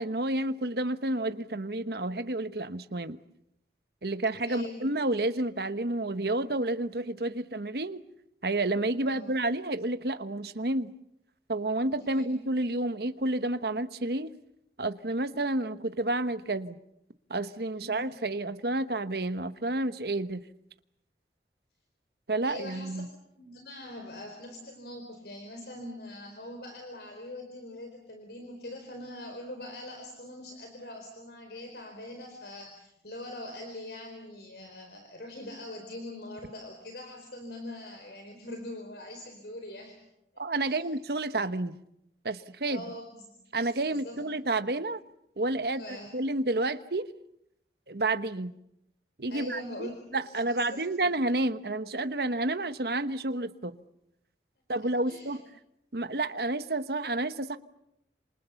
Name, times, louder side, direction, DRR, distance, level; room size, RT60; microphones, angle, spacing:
voice 1, 0.0-3.2 4.0-8.0 8.4-10.9 11.5-14.3 14.8-16.8 17.3-20.4 22.3-23.0 40.4-41.8 42.2-42.8 43.5-45.0 45.4-47.1 47.9-48.5 49.2-49.9 50.1-53.8 54.7-55.4 55.9-57.6, right 2 dB, 60° right, 1.1 m, -30 dB
voice 2, 4.5-4.8 9.1-9.3 12.0-12.4 17.7-18.0 22.4-23.0 23.3-40.0 40.6-40.9 42.7-43.4 43.9-44.2 45.7-46.1 49.3-51.1 55.1-55.4, left 1 dB, 65° left, 4.6 m, -43 dB
28.5 x 27.5 x 7.1 m
head